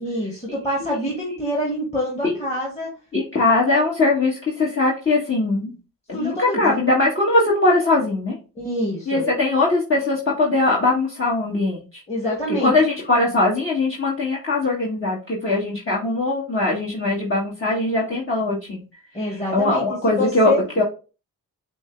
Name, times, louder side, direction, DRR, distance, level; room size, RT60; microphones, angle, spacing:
voice 1, 0.0-2.9 6.1-6.8 8.6-9.2 12.1-12.7 19.1-19.8 20.1-20.8, equal, 15° left, -3 dB, 1.8 m, -26 dB
voice 2, 3.1-5.7 6.1-8.4 9.1-12.0 12.5-18.8 19.5-20.8, left 2 dB, 30° left, -6 dB, 1.6 m, -21 dB
6.2 x 2.2 x 3.2 m, 0.33 s
cardioid pair, 50°, 39 cm